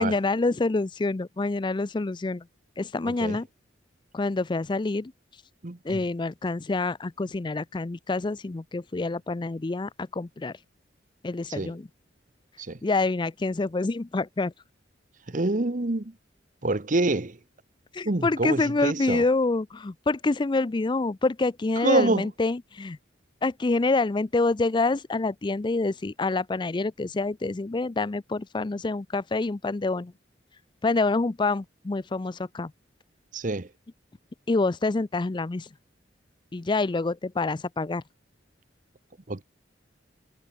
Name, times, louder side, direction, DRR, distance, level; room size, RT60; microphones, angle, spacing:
voice 1, 0.0-2.5 2.8-3.5 4.1-5.1 5.8-10.6 11.2-11.9 12.8-14.5 17.9-23.0 23.4-30.1 30.8-32.7 34.5-35.7 36.5-38.0, left 3 dB, 25° left, 0.4 m, -27 dB
voice 2, 3.1-3.4 5.6-6.0 11.5-11.7 12.6-12.8 15.3-16.1 16.6-17.4 18.0-19.2 21.8-22.3 33.3-33.7 39.3-39.4, right 2 dB, 45° right, 1.1 m, -26 dB
head